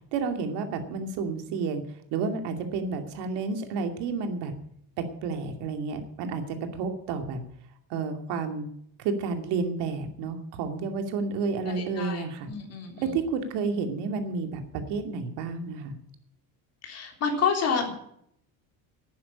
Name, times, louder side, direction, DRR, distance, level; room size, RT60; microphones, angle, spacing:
voice 1, 0.1-1.8 2.1-4.5 5.2-7.4 7.9-8.7 9.0-12.5 13.0-15.9, right 4 dB, 75° right, 6 dB, 2.6 m, -30 dB
voice 2, 11.7-12.2 12.5-13.0 16.8-17.9, left 6 dB, 35° left, 2 dB, 3.5 m, -28 dB
11.5 x 9.6 x 8.7 m, 0.70 s
cardioid pair, 170°, 41 cm